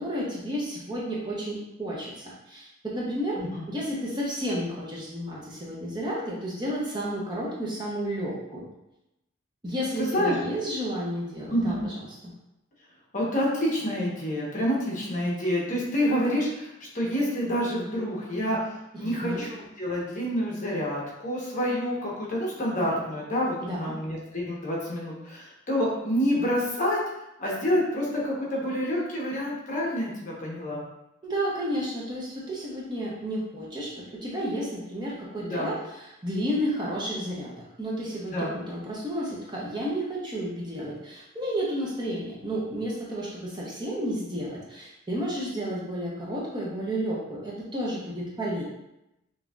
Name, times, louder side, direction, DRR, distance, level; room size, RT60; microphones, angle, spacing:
voice 1, 0.0-3.4 3.7-8.7 9.6-12.3 18.9-19.4 23.6-23.9 31.2-48.6, equal, 20° right, -5 dB, 0.7 m, -32 dB
voice 2, 10.0-10.3 11.5-11.8 13.1-18.6 19.0-27.0 27.4-30.8 35.4-35.7 38.3-38.5, equal, 35° left, -4 dB, 1.0 m, -28 dB
5.9 x 2.8 x 2.4 m, 0.89 s
head